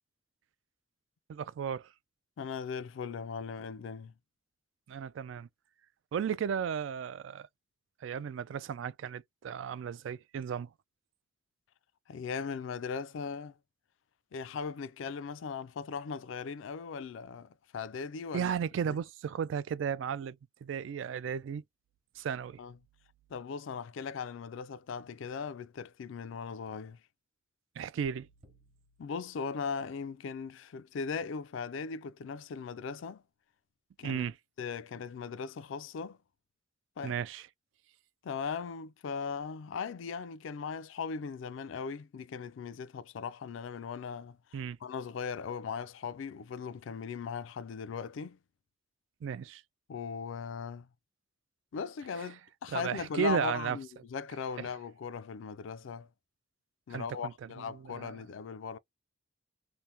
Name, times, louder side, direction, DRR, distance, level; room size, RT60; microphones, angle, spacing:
voice 1, 1.3-1.9 4.9-5.5 6.1-7.5 8.0-10.7 18.3-21.6 22.2-22.6 27.8-28.3 34.0-34.3 37.0-37.5 44.5-44.8 49.2-49.6 52.7-53.8 56.9-57.3 57.7-58.1, right 7 dB, 70° right, 0.3 m, -34 dB
voice 2, 2.4-4.1 12.1-13.5 14.3-18.5 18.9-19.0 22.6-22.8 23.3-27.0 29.0-33.2 34.0-34.3 34.6-36.2 37.0-37.2 38.2-48.4 49.9-50.9 51.7-56.1 56.9-58.8, left 6 dB, 75° left, 0.4 m, -38 dB
sound 1, 28.0-30.2, right 2 dB, 30° right, 0.9 m, -64 dB
2.8 x 2.1 x 3.3 m
head